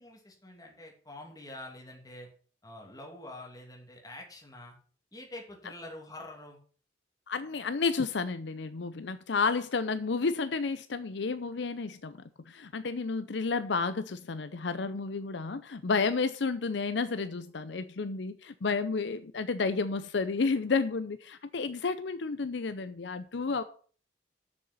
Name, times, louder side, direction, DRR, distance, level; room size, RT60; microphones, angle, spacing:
voice 1, 0.0-2.3 2.6-4.8 5.1-6.6, left 1 dB, 20° left, 2.6 m, -46 dB
voice 2, 7.3-23.6, left 4 dB, 70° left, 0.6 m, -31 dB
7.0 x 6.7 x 7.9 m
head